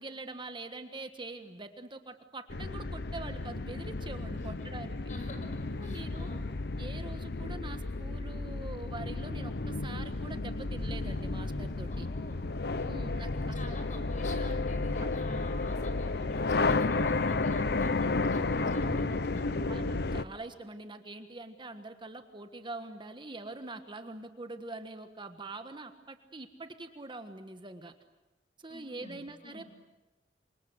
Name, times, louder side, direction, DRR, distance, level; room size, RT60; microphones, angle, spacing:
voice 1, 0.0-5.1 5.7-6.4 6.8-12.1 12.9-13.8 15.0-15.1 19.6-27.9 28.6-29.6, right 2 dB, 25° right, 8 dB, 1.5 m, -44 dB
sound 1, 2.5-20.2, left 3 dB, 65° left, 0.9 m, -32 dB
voice 2, 4.3-4.7 5.1-6.5 11.9-19.6 28.7-29.7, left 2 dB, 45° left, 6 dB, 6.0 m, -48 dB
28.0 x 25.5 x 8.0 m, 1.1 s
head